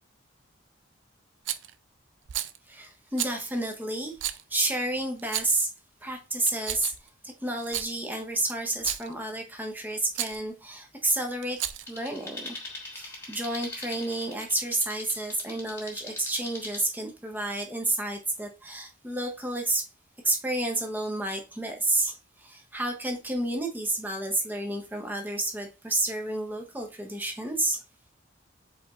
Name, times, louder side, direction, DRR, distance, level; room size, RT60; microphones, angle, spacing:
Rattle, 1.5-1.7 2.3-2.6 3.2-3.4 4.2-4.4 5.2-5.7 6.4-7.1 7.6-7.9 8.7-9.1 10.1-10.4 11.4-12.0, right 12 dB, 75° right, 0.4 m, -33 dB
voice 1, 2.7-4.1 4.5-5.7 6.0-6.9 7.2-11.6 11.9-12.6 12.9-19.8 20.2-27.8, right 2 dB, 10° right, 0.7 m, -30 dB
sound 1, 11.9-16.8, left 2 dB, 15° left, 1.2 m, -42 dB
4.9 x 4.0 x 2.4 m
head